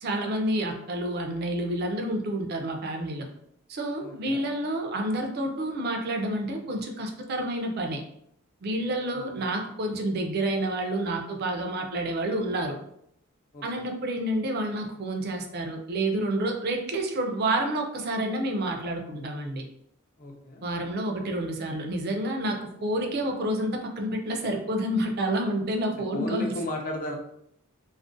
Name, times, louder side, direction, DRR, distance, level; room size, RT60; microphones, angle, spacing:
voice 1, 0.0-3.3 3.7-8.0 8.6-12.8 13.6-19.7 20.6-26.5, right 1 dB, 50° right, 3 dB, 0.4 m, -29 dB
voice 2, 4.0-4.4 9.3-9.5 13.5-13.6 20.2-20.6 26.1-27.2, left 1 dB, 40° left, 2 dB, 0.4 m, -34 dB
2.4 x 2.1 x 2.5 m, 0.73 s
head